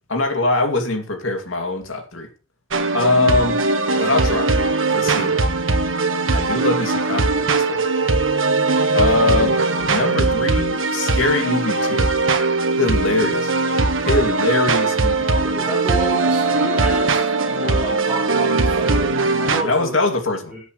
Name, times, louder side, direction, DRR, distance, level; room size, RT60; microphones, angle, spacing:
voice 1, 0.1-2.3 2.9-3.6 3.9-4.5 4.9-5.3 6.3-7.8 8.9-9.6 9.8-12.1 12.7-13.5 14.0-15.3 19.6-20.5, left 2 dB, 70° left, 2.5 m, -22 dB
sound 1, 2.7-19.6, right 3 dB, 75° right, 1.4 m, -20 dB
voice 2, 15.3-20.0 20.5-20.6, equal, 5° right, 4.6 m, -30 dB
20.5 x 8.0 x 3.2 m
head